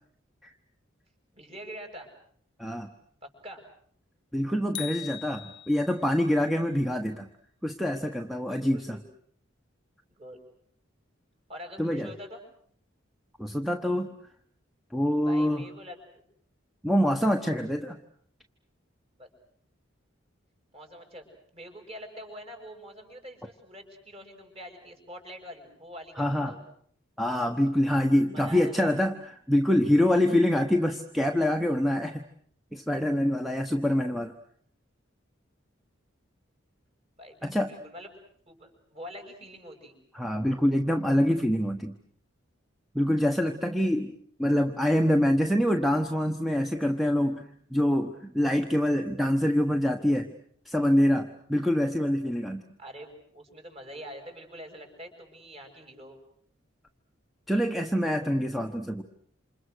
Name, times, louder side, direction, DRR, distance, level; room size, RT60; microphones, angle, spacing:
voice 1, 1.3-2.1 3.2-3.6 8.4-9.1 10.1-10.4 11.5-12.4 15.2-16.0 19.2-19.3 20.7-21.3 21.5-26.6 28.3-28.9 37.2-38.1 38.5-40.0 52.8-56.2, equal, 30° right, 4 dB, 6.6 m, -45 dB
voice 2, 4.3-7.3 7.6-9.0 11.8-12.1 13.4-14.1 14.9-15.6 16.8-18.0 26.2-26.5 27.2-32.2 32.7-34.3 37.4-37.7 40.1-41.9 42.9-44.1 44.4-50.3 50.6-52.6 57.5-59.0, equal, ahead, 4 dB, 1.2 m, -25 dB
sound 1, 4.7-6.1, left 13 dB, 65° left, 1.0 m, -40 dB
28.0 x 27.5 x 6.5 m, 0.62 s
head